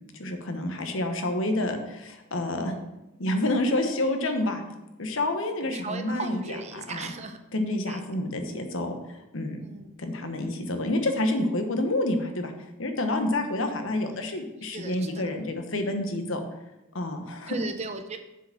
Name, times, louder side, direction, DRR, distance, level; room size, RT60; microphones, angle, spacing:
voice 1, 0.1-2.7 3.2-4.6 5.0-7.1 7.5-9.6 10.0-12.5 12.8-16.4 16.9-17.6, left 1 dB, 65° left, 5 dB, 1.0 m, -28 dB
voice 2, 5.6-7.4 7.9-8.0 9.6-9.9 14.1-14.2 14.7-15.3 17.5-18.2, right 3 dB, 30° right, 7 dB, 0.6 m, -37 dB
7.0 x 5.0 x 6.0 m, 0.97 s
head